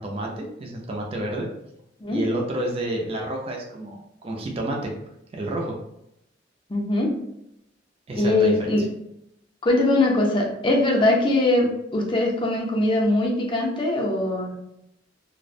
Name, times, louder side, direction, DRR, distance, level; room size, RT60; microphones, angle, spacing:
voice 1, 0.0-1.5 2.1-4.9 5.3-5.8 8.1-8.7, right 1 dB, 30° right, 0 dB, 0.4 m, -29 dB
voice 2, 6.7-7.2 8.2-8.8 9.6-14.5, left 2 dB, 25° left, -1 dB, 0.5 m, -21 dB
2.4 x 2.0 x 2.5 m, 0.81 s
head